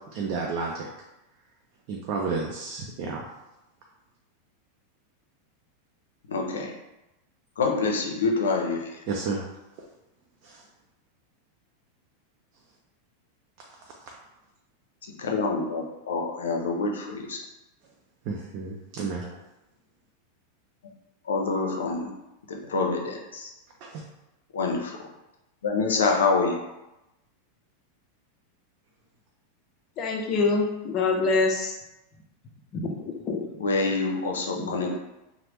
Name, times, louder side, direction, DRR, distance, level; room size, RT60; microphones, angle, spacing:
voice 1, 0.1-0.9 1.9-3.2 9.1-9.4 10.4-10.6 18.3-19.2 23.8-24.0, right 4 dB, 50° right, -1 dB, 0.5 m, -31 dB
voice 2, 6.3-6.7 7.6-8.8 15.2-17.4 21.3-22.1 22.5-23.5 24.5-25.0 25.6-26.5 33.6-34.9, left 4 dB, 85° left, 1 dB, 0.6 m, -26 dB
voice 3, 30.0-31.7 32.7-33.5 34.6-34.9, left 3 dB, 40° left, 1 dB, 0.6 m, -26 dB
3.2 x 2.1 x 3.0 m, 0.95 s
hypercardioid pair, 110°, 0 cm